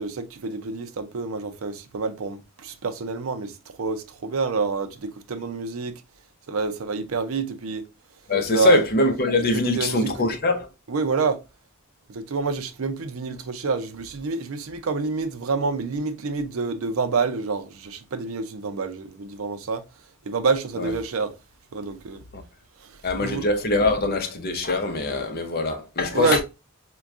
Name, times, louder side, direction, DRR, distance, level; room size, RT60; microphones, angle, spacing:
voice 1, 0.0-5.9 6.5-7.9 8.5-8.8 9.5-10.3 10.9-11.4 12.1-19.8 20.3-21.3 21.7-22.2 22.8-23.5 26.1-26.4, right 4 dB, 80° right, 0.5 m, -27 dB
voice 2, 8.3-10.7 20.8-20.9 22.3-22.4 23.0-26.4, left 2 dB, 50° left, 0.7 m, -23 dB
4.4 x 2.2 x 2.4 m
head